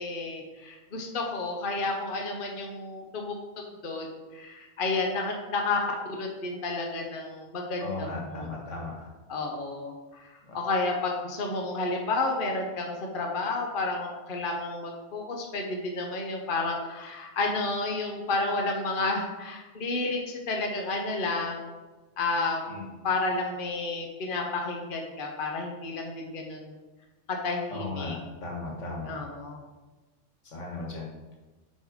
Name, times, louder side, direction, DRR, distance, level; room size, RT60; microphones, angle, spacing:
voice 1, 0.0-4.1 4.3-8.5 9.3-21.7 22.2-22.8 23.0-26.7 27.3-28.2 29.1-29.6, left 3 dB, 50° left, 1 dB, 1.1 m, -31 dB
voice 2, 7.8-9.1 22.7-22.9 27.7-29.3 30.5-31.1, left 2 dB, 80° left, -2 dB, 2.1 m, -36 dB
6.7 x 5.7 x 5.0 m, 1.2 s
omnidirectional pair, 1.2 m